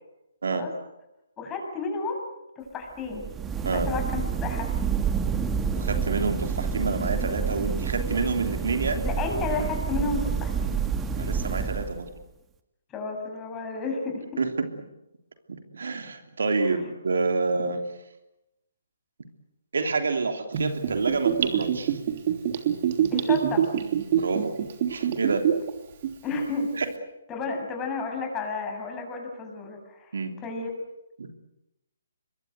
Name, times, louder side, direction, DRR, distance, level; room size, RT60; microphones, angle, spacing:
voice 1, 1.4-2.2 2.6-3.2 3.6-4.7 9.0-10.8 12.9-14.4 16.6-16.8 23.1-23.7 26.2-26.7 27.3-30.2 30.4-30.7, left 4 dB, 15° left, 3 dB, 7.2 m, -32 dB
sound 1, 3.1-12.2, right 6 dB, 15° right, 1.7 m, -28 dB
voice 2, 5.7-9.0 11.2-12.1 14.4-14.7 15.5-17.8 19.7-22.0 24.1-24.5 24.9-25.4 26.8-26.9 30.1-30.3 31.2-31.3, right 4 dB, 70° right, 6 dB, 3.2 m, -28 dB
Gurgling / Bathtub (filling or washing), 20.5-25.7 26.0-26.1, right 9 dB, 40° right, 3.2 m, -24 dB
26.0 x 22.5 x 8.1 m, 0.91 s
figure-of-eight pair, 140°, 0 cm